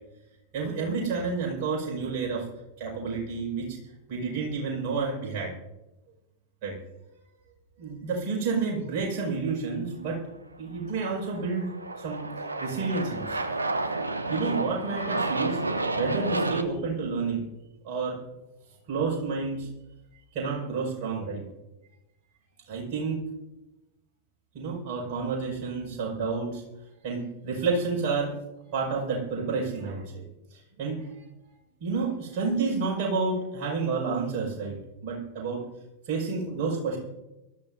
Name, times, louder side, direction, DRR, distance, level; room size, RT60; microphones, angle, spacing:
voice 1, 0.5-2.5 2.8-3.8 4.1-5.5 6.6-6.7 7.8-10.2 10.6-11.7 12.0-12.3 12.6-13.4 14.3-15.6 16.0-17.5 17.8-18.2 18.9-19.7 20.3-21.4 22.7-23.2 24.5-26.6 27.0-28.3 28.7-30.2 30.5-31.0 31.8-34.8 35.0-35.6 36.1-37.0, right 4 dB, 45° right, -2 dB, 6.0 m, -30 dB
Aircraft, 10.9-16.6, right 2 dB, 80° right, 0.9 m, -30 dB
23.5 x 13.5 x 2.7 m, 0.99 s
figure-of-eight pair, 90°, 0 cm